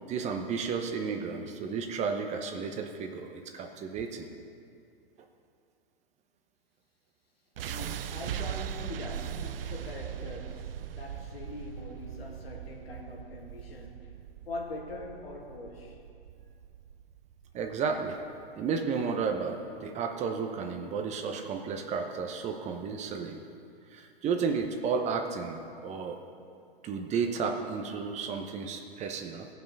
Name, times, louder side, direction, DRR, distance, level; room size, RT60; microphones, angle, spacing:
voice 1, 0.1-4.3 17.5-18.2 18.6-23.4 23.9-26.2 26.8-29.5, right 5 dB, 25° right, 4 dB, 0.8 m, -32 dB
sound 1, 7.6-19.6, right 9 dB, 70° right, 0.5 m, -40 dB
voice 2, 7.7-14.1 14.5-16.0, left 2 dB, 80° left, -1 dB, 2.2 m, -43 dB
16.5 x 5.8 x 5.4 m, 2.4 s
hypercardioid pair, 115°, 30 cm